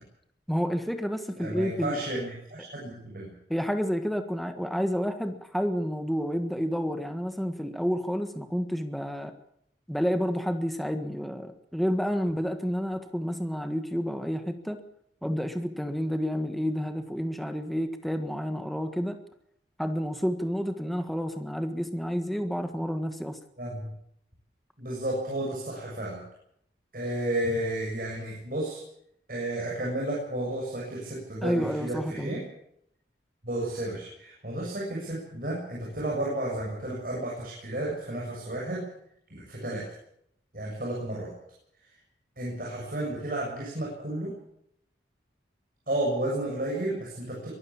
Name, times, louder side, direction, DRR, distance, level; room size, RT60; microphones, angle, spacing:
voice 1, 0.5-2.0 2.6-2.7 3.5-9.3 9.9-14.8 15.2-19.2 19.8-23.4 31.4-32.5, equal, ahead, 7 dB, 1.5 m, -30 dB
voice 2, 1.4-3.3 23.6-23.9 24.8-26.2 26.9-28.8 29.3-32.4 33.4-38.8 39.3-39.8 40.5-41.3 42.4-44.3 45.9-47.5, right 1 dB, 50° right, -4 dB, 7.1 m, -32 dB
23.5 x 13.5 x 8.6 m, 0.74 s
head